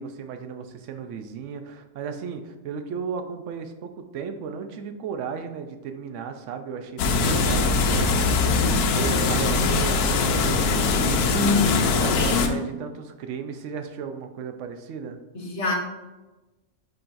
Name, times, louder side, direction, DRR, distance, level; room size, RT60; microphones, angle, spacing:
voice 1, 0.0-11.4 12.0-15.2, right 6 dB, 65° right, 7 dB, 0.9 m, -35 dB
sound 1, 7.0-12.5, left 4 dB, 85° left, 1.1 m, -22 dB
voice 2, 11.3-11.8 12.1-12.6 15.3-15.7, left 3 dB, 50° left, 0 dB, 1.3 m, -24 dB
10.0 x 3.9 x 2.6 m, 1.1 s
omnidirectional pair, 1.6 m